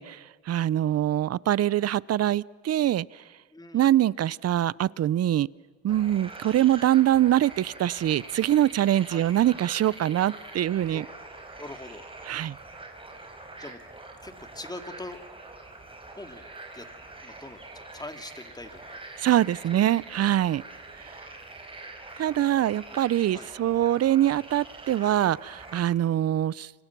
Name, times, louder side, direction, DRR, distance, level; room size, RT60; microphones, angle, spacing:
voice 1, 0.0-3.1 3.7-5.5 5.8-11.0 12.2-12.6 19.2-20.6 22.2-26.7, right 12 dB, 55° right, 22 dB, 0.6 m, -24 dB
voice 2, 3.5-3.9 9.1-9.3 10.9-11.0 11.6-12.0 13.6-13.8 14.2-15.2 16.1-16.5 16.7-16.9 17.2-19.0 19.7-19.8 23.3-23.5, left 2 dB, 15° left, 6 dB, 2.7 m, -42 dB
sound 1, 5.9-25.8, right 2 dB, 15° right, 4.8 m, -44 dB
29.5 x 25.0 x 6.1 m, 1.5 s
cardioid pair, 90°, 30 cm